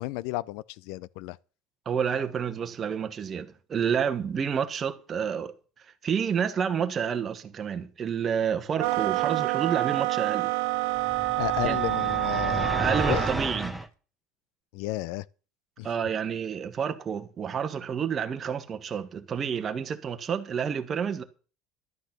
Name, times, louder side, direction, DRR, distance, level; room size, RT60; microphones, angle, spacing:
voice 1, 0.0-1.4 11.4-13.3 14.7-15.3 15.8-15.9, left 18 dB, 70° left, 0.5 m, -33 dB
voice 2, 1.8-10.5 11.6-11.8 12.8-13.8 15.8-21.2, right 7 dB, 25° right, 1.2 m, -29 dB
sound 1, 8.8-13.4, right 21 dB, 85° right, 0.6 m, -27 dB
sound 2, 11.0-13.9, equal, ahead, 0.9 m, -32 dB
12.0 x 9.4 x 6.0 m
cardioid pair, 175°, 0 cm